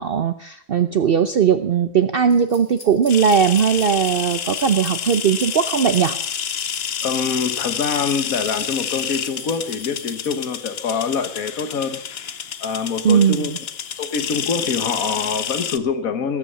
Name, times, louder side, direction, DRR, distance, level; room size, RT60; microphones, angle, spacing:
voice 1, 0.0-6.2 13.0-13.6, right 7 dB, 50° right, 10 dB, 0.8 m, -18 dB
sound 1, 2.3-10.3, left 2 dB, 35° left, 2.7 m, -42 dB
sound 2, 3.1-15.8, left 8 dB, 50° left, 0.9 m, -29 dB
voice 2, 7.0-12.0 12.6-13.5 14.0-16.4, left 5 dB, 75° left, 8 dB, 1.8 m, -25 dB
19.5 x 8.7 x 6.9 m, 0.63 s
omnidirectional pair, 1.5 m